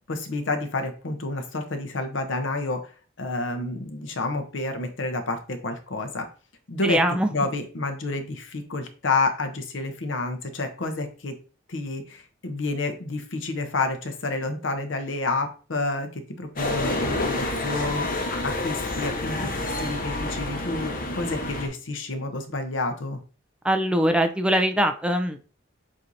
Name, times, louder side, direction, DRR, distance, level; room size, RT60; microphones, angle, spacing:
voice 1, 0.1-2.9 3.2-6.3 6.7-7.0 7.3-11.3 11.7-23.2, left 3 dB, 75° left, 6 dB, 0.8 m, -29 dB
voice 2, 6.8-7.3 23.6-25.4, equal, 5° right, 6 dB, 0.4 m, -22 dB
sound 1, 16.6-21.7, left 2 dB, 45° left, 0.9 m, -28 dB
7.4 x 2.7 x 2.6 m, 0.38 s
head